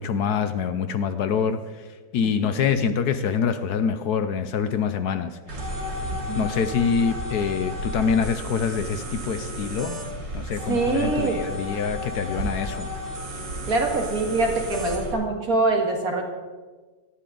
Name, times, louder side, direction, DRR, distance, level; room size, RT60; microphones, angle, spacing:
voice 1, 0.0-1.8 2.1-5.6 6.4-10.0 10.3-12.9, left 6 dB, 70° left, 11 dB, 1.2 m, -25 dB
voice 2, 2.2-2.6 6.1-6.5 10.7-11.4 13.7-16.2, right 2 dB, 55° right, 2 dB, 2.4 m, -24 dB
sound 1, 5.5-15.1, equal, 85° right, 3.5 m, -32 dB
18.0 x 13.0 x 3.9 m, 1.4 s
omnidirectional pair, 1.9 m